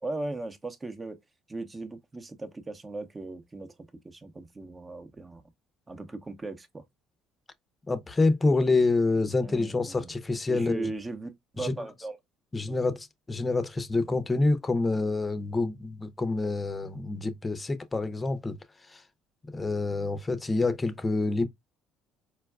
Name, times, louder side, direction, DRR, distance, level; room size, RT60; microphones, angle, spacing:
voice 1, 0.0-1.2 1.5-3.7 4.0-5.4 5.9-6.8 9.4-10.1 10.5-12.2 12.7-12.8, right 2 dB, 25° right, 0.7 m, -38 dB
voice 2, 7.9-10.9 11.6-11.7 12.5-18.6 18.9-19.0 19.5-21.5, left 3 dB, 20° left, 0.6 m, -27 dB
4.4 x 2.2 x 2.2 m
supercardioid pair, 75°, 0 cm